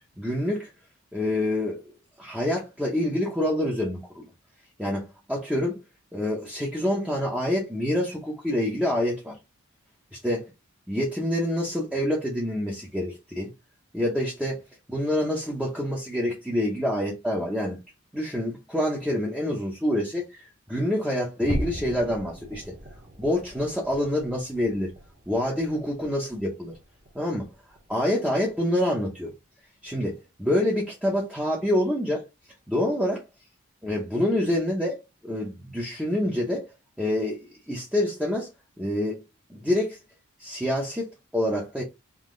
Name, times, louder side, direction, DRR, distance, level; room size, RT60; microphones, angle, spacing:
voice 1, 0.2-0.7 1.1-1.8 2.2-4.2 4.8-5.8 6.1-9.4 10.2-10.4 10.9-13.5 13.9-14.6 14.9-17.8 18.1-22.7 23.2-24.9 25.3-26.7 27.1-27.5 27.9-29.3 29.8-30.1 30.4-32.2 32.7-33.2 33.8-36.7 37.0-37.4 37.7-38.5 38.8-39.2 39.5-40.0 40.4-41.1 41.3-41.8, left 1 dB, 5° right, 0.7 m, -26 dB
sound 1, 21.4-28.1 28.4-28.7 29.1-29.3 29.8-30.0, equal, 35° right, 1.0 m, -38 dB
3.8 x 2.8 x 3.8 m
head